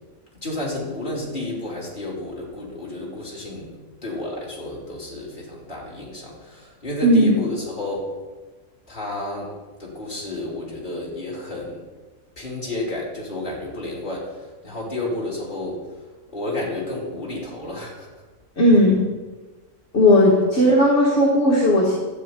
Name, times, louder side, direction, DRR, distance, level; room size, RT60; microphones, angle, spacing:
voice 1, 0.4-8.1 8.9-9.5 9.8-11.8 12.4-14.2 14.6-15.8 16.3-18.1, left 2 dB, 35° left, -5 dB, 3.1 m, -31 dB
voice 2, 7.0-7.3 18.6-19.0 19.9-21.9, left 1 dB, 55° left, -4 dB, 1.9 m, -16 dB
12.0 x 8.1 x 4.4 m, 1.3 s
omnidirectional pair, 1.5 m